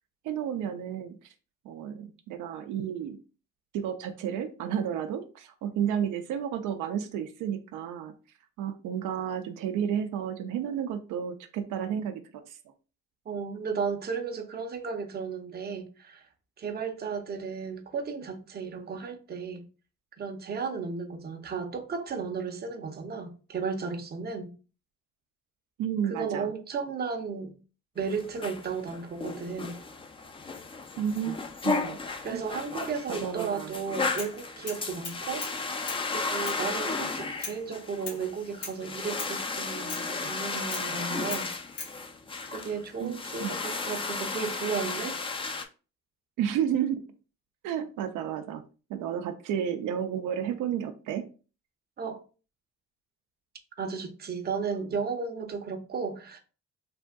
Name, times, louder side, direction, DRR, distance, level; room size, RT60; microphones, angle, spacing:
voice 1, 0.2-1.3 1.6-3.2 3.7-8.1 8.6-12.6 25.8-26.5 31.0-32.0 32.3-32.4 33.1-33.7 43.0-43.1 43.4-43.6 46.4-47.0 47.6-48.6 48.9-51.3, right 9 dB, 85° right, 0.5 m, -32 dB
voice 2, 13.3-16.3 16.6-19.6 20.2-24.5 26.0-27.5 28.0-29.8 32.2-35.5 36.1-41.5 42.5-45.2 52.0-52.2 53.8-56.4, right 5 dB, 35° right, 0.6 m, -34 dB
sound 1, 28.0-45.6, left 4 dB, 20° left, 0.3 m, -34 dB
sound 2, 34.2-34.4 34.7-35.6 35.9-36.0 36.5-36.6 37.4-37.6 38.1-38.2 38.6-38.8 39.2-39.4 39.9-40.1 40.7-40.9 41.3-42.0, left 4 dB, 75° left, 1.5 m, -39 dB
3.4 x 2.6 x 2.2 m
cardioid pair, 90°, 30 cm